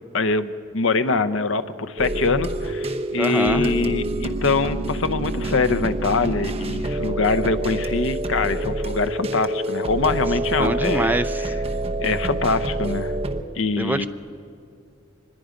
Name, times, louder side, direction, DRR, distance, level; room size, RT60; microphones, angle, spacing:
voice 1, 0.1-11.1 11.4-11.5 12.0-13.1 13.6-14.1, left 4 dB, 70° left, 12 dB, 0.8 m, -23 dB
sound 1, 2.0-13.4, right 1 dB, 30° right, 0.9 m, -27 dB
voice 2, 3.2-3.7 10.6-11.5 13.8-14.1, right 1 dB, 10° right, 8 dB, 0.5 m, -24 dB
25.0 x 21.0 x 5.1 m, 2.4 s
head